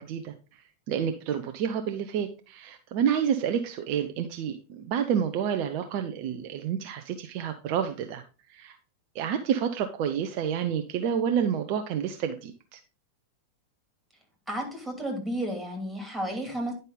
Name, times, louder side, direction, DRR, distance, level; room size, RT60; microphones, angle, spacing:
voice 1, 0.0-8.2 8.5-8.8 9.1-12.8, right 8 dB, 45° right, 7 dB, 0.7 m, -29 dB
voice 2, 14.5-16.7, right 1 dB, 5° right, 3 dB, 2.6 m, -32 dB
9.9 x 5.3 x 3.8 m, 0.33 s
figure-of-eight pair, 90°, 0 cm